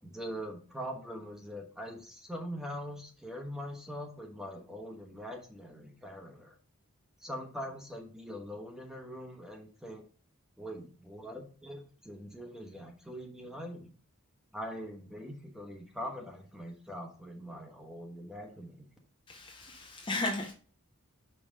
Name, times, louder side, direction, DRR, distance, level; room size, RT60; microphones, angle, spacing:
voice 1, 0.0-6.5 7.2-10.0 10.6-13.9 14.5-18.9, equal, ahead, 1.0 m, -42 dB
voice 2, 19.3-20.5, left 2 dB, 20° left, 0.6 m, -35 dB
5.4 x 3.8 x 5.2 m
head